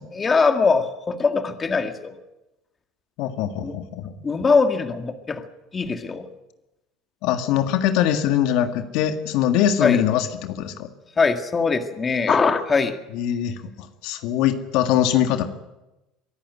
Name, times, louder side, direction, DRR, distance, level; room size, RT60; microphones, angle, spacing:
voice 1, 0.1-2.1 3.6-3.7 4.2-5.4 5.7-6.3 9.8-10.0 11.2-13.0, left 4 dB, 25° left, 7 dB, 1.9 m, -21 dB
voice 2, 3.2-4.3 7.2-10.9 12.3-12.4 13.1-15.4, left 10 dB, 70° left, 7 dB, 1.8 m, -22 dB
23.5 x 11.5 x 9.7 m, 0.99 s
supercardioid pair, 115°, 0 cm